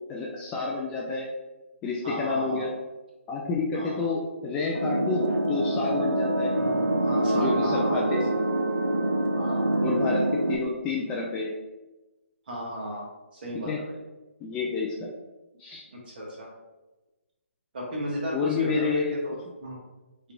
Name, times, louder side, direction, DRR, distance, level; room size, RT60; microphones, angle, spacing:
voice 1, 0.1-1.3 1.8-2.7 3.3-6.6 7.3-8.3 9.8-11.5 13.6-13.8 14.4-15.0 15.6-15.8 18.3-19.2, left 4 dB, 15° left, -2 dB, 0.3 m, -29 dB
voice 2, 2.0-2.6 3.7-4.1 7.0-8.4 9.3-9.8 12.5-13.9 15.9-16.5 17.7-19.8, equal, 45° right, -3 dB, 1.4 m, -35 dB
sound 1, 4.7-10.6, right 1 dB, 85° right, 0.6 m, -25 dB
4.6 x 3.5 x 2.3 m, 1.1 s
figure-of-eight pair, 140°, 7 cm